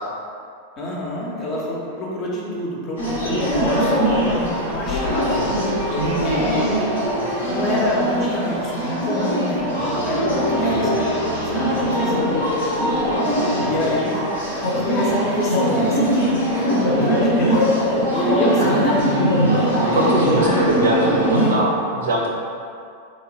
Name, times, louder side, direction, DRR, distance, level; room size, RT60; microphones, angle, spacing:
voice 1, 0.8-5.6 5.9-6.6 7.0-7.1 7.5-11.0 11.3-14.2 14.8-19.0 20.2-20.6, left 1 dB, 30° left, -4 dB, 0.6 m, -27 dB
sound 1, 3.0-21.5, equal, 70° left, 0.7 m, -21 dB
voice 2, 6.0-6.5 10.6-10.9 18.6-22.3, right 1 dB, 65° right, -4 dB, 0.6 m, -23 dB
3.4 x 2.1 x 2.7 m, 2.4 s
figure-of-eight pair, 90°, 0 cm